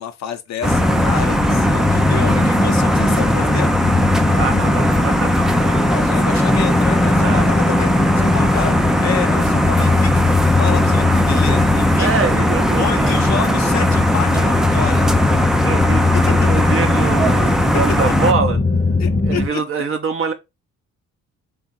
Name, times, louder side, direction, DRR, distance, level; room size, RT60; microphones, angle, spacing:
voice 1, 0.0-3.8 5.9-8.7 9.0-12.4 12.8-15.1 17.4-17.6 19.0-19.6, left 8 dB, 65° left, 0.7 m, -29 dB
sound 1, 0.6-19.5, left 3 dB, 20° left, 0.8 m, -19 dB
sound 2, 0.6-18.3, equal, ahead, 0.4 m, -19 dB
voice 2, 4.3-5.8 7.2-7.4 11.1-11.2 12.0-13.2 14.3-14.5 15.6-18.6 19.3-20.3, right 5 dB, 45° right, 0.7 m, -24 dB
3.5 x 2.5 x 4.0 m
cardioid pair, 90°, 30 cm